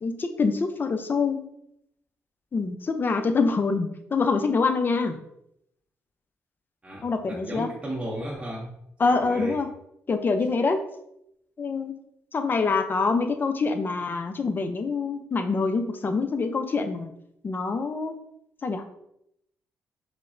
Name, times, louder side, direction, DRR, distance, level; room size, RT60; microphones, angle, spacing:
voice 1, 0.0-1.4 2.5-5.2 7.0-7.7 9.0-9.7 10.1-10.8 11.6-11.9 12.3-17.1 17.4-18.2 18.6-18.8, left 4 dB, 35° left, 7 dB, 0.4 m, -25 dB
voice 2, 6.8-8.7 9.0-9.6, right 1 dB, 20° right, -3 dB, 0.6 m, -35 dB
4.8 x 2.0 x 2.5 m, 0.78 s
cardioid pair, 70°, 6 cm